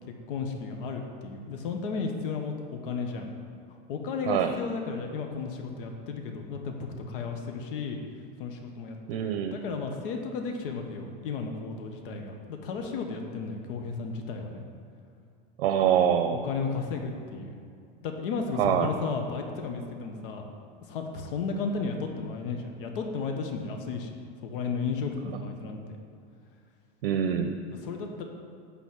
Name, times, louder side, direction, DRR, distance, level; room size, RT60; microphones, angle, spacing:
voice 1, 0.3-3.3 3.9-8.0 8.4-14.6 16.3-17.5 18.0-20.5 20.9-24.1 24.4-25.8 27.8-28.2, left 4 dB, 65° left, 3 dB, 1.2 m, -34 dB
voice 2, 9.1-9.6 15.6-16.4 18.6-18.9 27.0-27.5, right 9 dB, 80° right, 6 dB, 0.7 m, -24 dB
11.5 x 4.1 x 7.8 m, 2.3 s
supercardioid pair, 160°, 29 cm